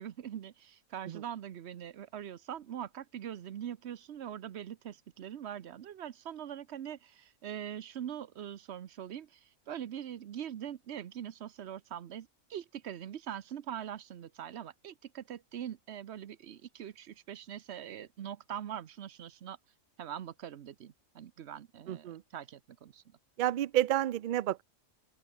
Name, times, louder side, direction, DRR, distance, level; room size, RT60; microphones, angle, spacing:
voice 1, 0.0-19.6 20.0-23.0, right 10 dB, 60° right, 1.0 m, -43 dB
voice 2, 21.9-22.2 23.4-24.6, right 13 dB, 80° right, 0.4 m, -30 dB
open air
omnidirectional pair, 1.4 m